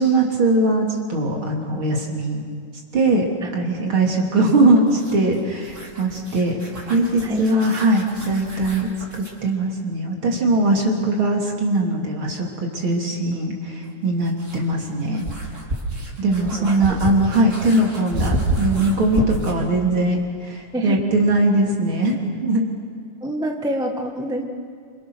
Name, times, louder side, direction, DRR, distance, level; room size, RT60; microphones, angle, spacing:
voice 1, 0.0-2.4 2.9-3.3 3.5-6.6 6.9-12.5 12.7-15.2 16.2-22.6, right 2 dB, 45° right, 0 dB, 3.8 m, -20 dB
sound 1, 4.9-9.4 11.7-11.8 13.8-19.6, right 1 dB, 25° right, 3.9 m, -30 dB
voice 2, 23.2-24.4, right 1 dB, 5° right, 3 dB, 0.6 m, -26 dB
27.5 x 27.5 x 6.4 m, 2.3 s
omnidirectional pair, 3.4 m